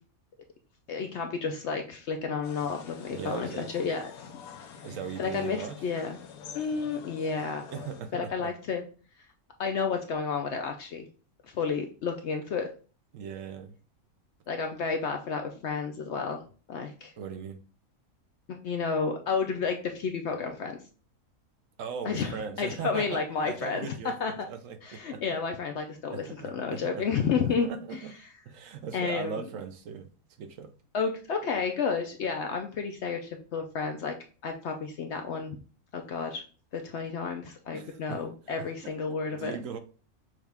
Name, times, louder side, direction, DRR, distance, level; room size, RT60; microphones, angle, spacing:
voice 1, 0.9-4.0 5.2-6.2 6.5-7.7 8.1-8.8 9.6-11.1 11.5-12.7 14.5-16.4 16.7-17.1 18.5-20.8 22.0-23.9 24.2-24.3 24.8-26.2 26.5-27.7 28.9-29.4 30.9-34.1 34.4-35.6 35.9-36.4 36.7-39.6, left 5 dB, 65° left, 0.7 m, -31 dB
sound 1, 2.4-8.0, left 7 dB, 85° left, 1.1 m, -46 dB
voice 2, 3.1-3.9 4.8-5.8 7.7-8.5 13.1-13.7 17.2-17.6 21.8-25.2 26.1-27.0 27.4-28.1 28.5-30.1 30.4-30.7 37.7-38.2 39.3-39.8, right 6 dB, 70° right, 0.9 m, -39 dB
6.3 x 2.3 x 3.4 m
omnidirectional pair, 1.5 m